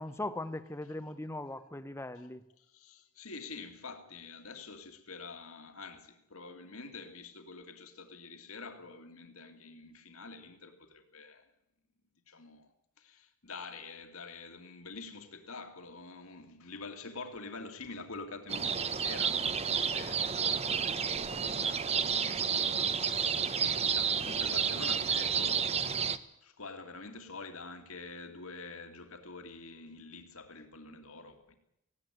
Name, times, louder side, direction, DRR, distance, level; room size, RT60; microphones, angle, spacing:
voice 1, 0.0-2.4, left 1 dB, 10° left, 11 dB, 0.8 m, -39 dB
voice 2, 2.6-11.5 12.3-25.9 26.4-31.6, left 3 dB, 70° left, 6 dB, 2.4 m, -47 dB
sound 1, 18.5-26.2, right 6 dB, 30° right, 0.8 m, -31 dB
18.5 x 17.0 x 9.2 m, 0.80 s
head